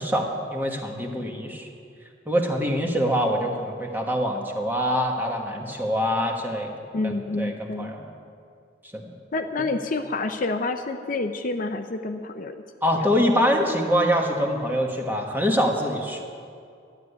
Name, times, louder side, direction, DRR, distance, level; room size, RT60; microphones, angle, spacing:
voice 1, 0.0-1.7 2.3-6.7 7.0-8.1 8.9-9.1 9.6-9.7 12.8-16.2, equal, 10° right, 1 dB, 1.3 m, -24 dB
voice 2, 6.9-7.9 9.3-12.6 12.9-13.1, left 3 dB, 45° left, 6 dB, 0.6 m, -28 dB
12.0 x 8.1 x 9.8 m, 2.4 s
head